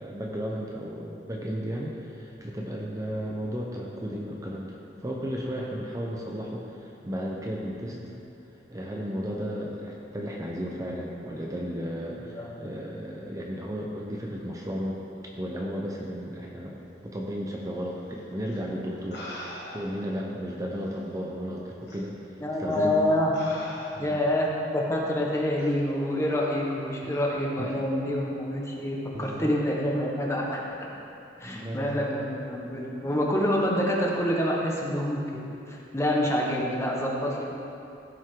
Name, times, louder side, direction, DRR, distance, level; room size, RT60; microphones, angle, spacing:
voice 1, 0.0-8.0 8.7-15.0 15.4-19.3 19.7-22.1 22.6-23.0 23.9-24.2 27.0-27.2 27.6-27.7 29.1-29.5 31.4-32.1, equal, 20° right, -2 dB, 0.8 m, -34 dB
voice 2, 12.3-12.7 22.4-23.3 24.0-30.6 31.4-35.2 35.7-37.5, left 1 dB, 15° left, -2 dB, 1.3 m, -27 dB
sound 1, 18.5-18.6 19.1-20.1 20.9-21.0 21.9-22.1 22.7-22.9 23.3-24.3 25.6-25.8, left 1 dB, 65° left, 1.6 m, -41 dB
15.5 x 6.2 x 3.8 m, 2.7 s
head